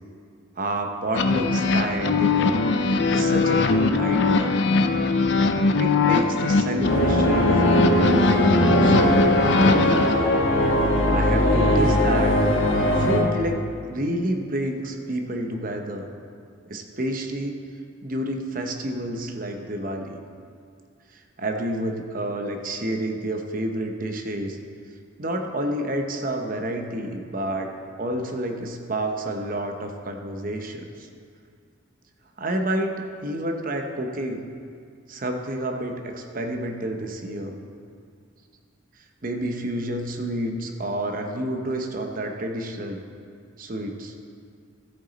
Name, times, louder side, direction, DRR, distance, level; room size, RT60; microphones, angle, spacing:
voice 1, 0.6-2.6 3.1-4.6 5.8-9.9 11.1-12.4 13.0-16.1 16.7-17.6 18.0-20.2 21.1-24.6 25.2-27.7 28.0-31.1 32.4-34.4 35.1-37.6 39.2-43.0 43.6-44.1, right 1 dB, 45° right, 4 dB, 0.8 m, -29 dB
sound 1, 1.1-10.1, left 3 dB, 60° left, 0.5 m, -21 dB
sound 2, 6.8-13.2, equal, 75° left, 1.6 m, -20 dB
13.5 x 8.1 x 4.1 m, 2.3 s
head